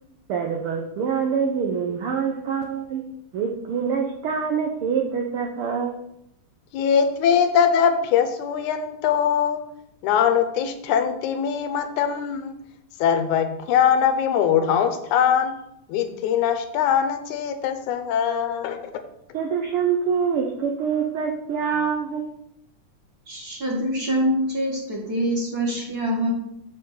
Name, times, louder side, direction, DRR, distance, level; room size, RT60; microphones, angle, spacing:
voice 1, 0.3-3.0 3.3-6.0 19.3-22.3, right 6 dB, 85° right, 3 dB, 1.2 m, -25 dB
voice 2, 6.7-9.6 10.0-12.6 13.0-15.5 15.9-19.0, left 8 dB, 80° left, 8 dB, 2.1 m, -22 dB
voice 3, 23.3-26.3, equal, 35° right, -3 dB, 2.0 m, -25 dB
7.1 x 4.4 x 6.7 m, 0.78 s
omnidirectional pair, 3.5 m